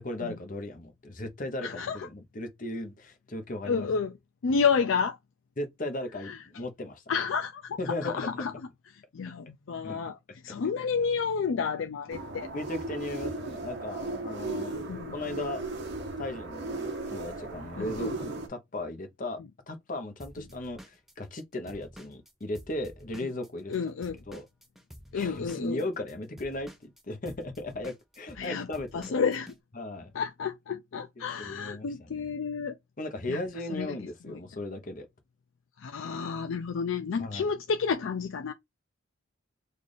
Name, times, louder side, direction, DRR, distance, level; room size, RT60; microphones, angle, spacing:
voice 1, 0.0-3.9 5.6-7.0 7.8-8.6 9.8-10.0 12.5-14.7 15.1-15.6 16.2-19.4 19.7-23.7 24.3-24.5 25.1-29.0 29.7-30.1 31.2-32.3 33.0-35.1 37.2-37.5, left 1 dB, 40° left, 0.8 m, -37 dB
voice 2, 1.6-2.1 3.6-4.2 4.4-5.2 6.2-6.4 7.1-8.5 9.1-10.2 10.4-12.5 14.9-15.1 17.8-18.2 23.2-23.3 23.7-24.2 25.1-25.8 28.4-28.7 28.9-29.5 30.1-32.8 33.3-33.4 33.7-34.0 34.3-34.4 35.8-38.5, left 5 dB, 65° left, 0.4 m, -30 dB
sound 1, 12.1-18.5, right 2 dB, 55° right, 0.9 m, -36 dB
Drum kit / Drum, 20.2-23.8 24.0-29.6, equal, ahead, 0.4 m, -50 dB
3.3 x 2.5 x 3.9 m
head